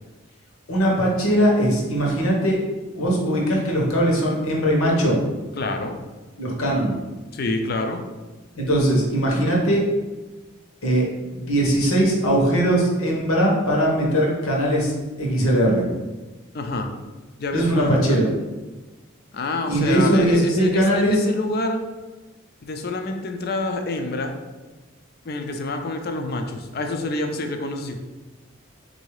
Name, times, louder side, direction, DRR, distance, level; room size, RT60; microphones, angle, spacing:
voice 1, 0.7-2.6 2.9-5.2 6.4-6.9 8.6-9.8 10.8-11.0 11.3-14.9 15.2-15.8 17.5-18.3 19.7-21.2, right 1 dB, 80° left, -2 dB, 1.2 m, -20 dB
voice 2, 5.6-6.0 7.3-8.0 16.5-16.9 17.4-18.3 19.3-21.8 22.6-24.3 25.2-28.0, left 2 dB, 45° left, 5 dB, 0.5 m, -27 dB
3.9 x 2.7 x 4.7 m, 1.2 s
head